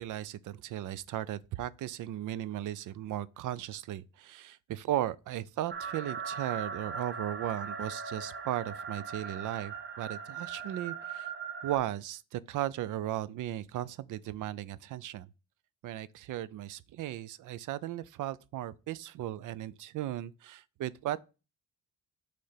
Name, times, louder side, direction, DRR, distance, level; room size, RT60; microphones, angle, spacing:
voice 1, 0.0-11.3 11.6-15.3 15.8-21.2, right 13 dB, 70° right, 0.5 m, -36 dB
sound 1, 5.7-11.8, right 5 dB, 35° right, 0.8 m, -39 dB
6.5 x 3.4 x 5.6 m
cardioid pair, 130°, 32 cm